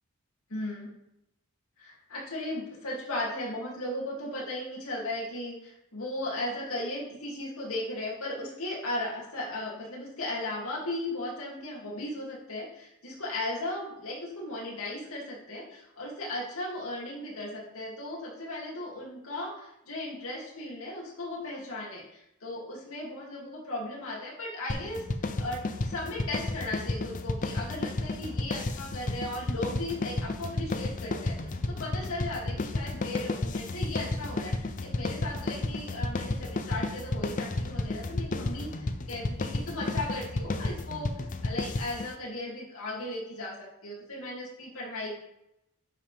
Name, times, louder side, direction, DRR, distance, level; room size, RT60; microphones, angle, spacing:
voice 1, 0.5-0.9 1.8-25.0 25.4-45.2, left 1 dB, 75° left, -4 dB, 2.8 m, -36 dB
sound 1, 24.7-42.1, left 2 dB, 35° left, 0.5 m, -32 dB
11.5 x 5.7 x 3.5 m, 0.84 s
head